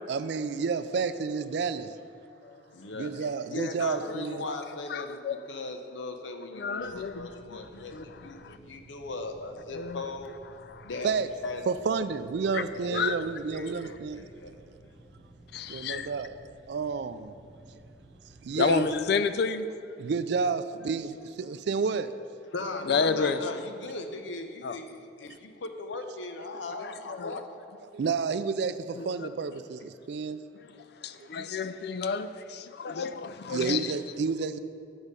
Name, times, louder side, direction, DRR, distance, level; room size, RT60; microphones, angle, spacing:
voice 1, 0.1-1.9 2.9-4.4 11.0-11.3 11.7-14.2 15.7-16.4 16.7-17.3 18.4-18.9 20.0-22.2 27.9-30.4 33.5-34.6, right 5 dB, 65° right, 12 dB, 0.3 m, -30 dB
voice 2, 2.7-10.4 10.8-11.6 12.9-13.0 13.5-14.5 22.5-27.6, left 2 dB, 90° left, 5 dB, 0.7 m, -38 dB
voice 3, 4.9-5.4 6.5-8.6 9.7-10.0 10.7-10.9 12.5-12.6 12.9-13.2 13.6-13.7 15.5-16.1 18.6-19.7 22.7-23.6 24.6-24.8 26.8-27.4 29.0-29.3 31.0-33.9, left 5 dB, 60° left, 12 dB, 0.4 m, -31 dB
sound 1, 6.8-18.9, right 1 dB, ahead, 1.0 m, -54 dB
7.1 x 6.4 x 5.1 m, 2.4 s
head